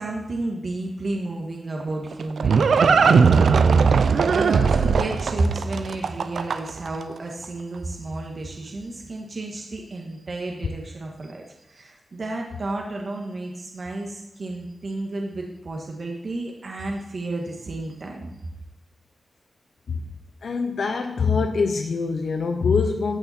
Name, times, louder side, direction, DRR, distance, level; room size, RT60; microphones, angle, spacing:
voice 1, 0.0-18.3, right 2 dB, 55° right, 0 dB, 1.7 m, -31 dB
Livestock farm animals working animals, 1.8-6.9, right 5 dB, 85° right, 0.5 m, -18 dB
voice 2, 20.4-23.2, left 5 dB, 80° left, 4 dB, 0.8 m, -24 dB
15.5 x 5.7 x 4.4 m, 0.92 s
wide cardioid pair, 100°, 0 cm